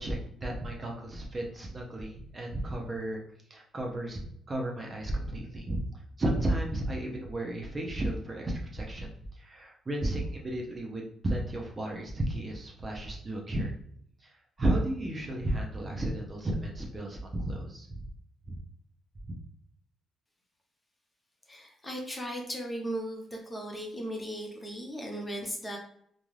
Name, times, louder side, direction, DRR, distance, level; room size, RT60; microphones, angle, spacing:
voice 1, 0.0-3.2 3.5-4.2 4.5-13.7 14.2-18.0 18.5-18.6, right 1 dB, 30° right, -1 dB, 0.7 m, -33 dB
voice 2, 21.5-25.8, equal, 15° left, 0 dB, 0.8 m, -37 dB
2.5 x 2.3 x 3.2 m, 0.67 s
cardioid pair, 90°, 0 cm